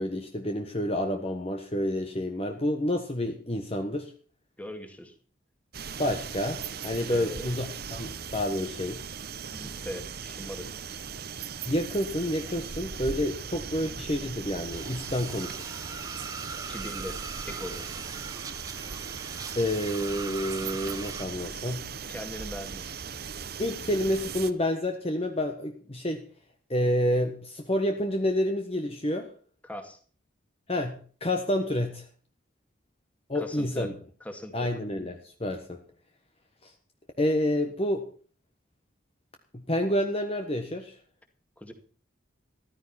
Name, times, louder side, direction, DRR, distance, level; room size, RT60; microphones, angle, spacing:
voice 1, 0.0-4.1 6.0-7.7 7.9-9.0 11.7-15.7 19.5-21.9 23.6-26.2 26.7-29.3 30.7-32.0 33.3-33.9 34.5-35.8 36.6-36.7 37.2-38.1 39.5-40.9, left 1 dB, 30° left, 5 dB, 1.3 m, -29 dB
voice 2, 4.6-5.1 7.1-7.5 9.5-10.7 16.7-17.2 17.4-17.8 22.1-23.0 29.6-30.0 33.3-33.9 34.2-34.7 41.6-41.7, left 1 dB, 5° left, 6 dB, 2.1 m, -39 dB
sound 1, 5.7-24.5, right 6 dB, 50° right, 0.9 m, -39 dB
sound 2, 14.7-21.2, right 4 dB, 20° right, 0.9 m, -41 dB
14.5 x 13.5 x 4.3 m, 0.43 s
head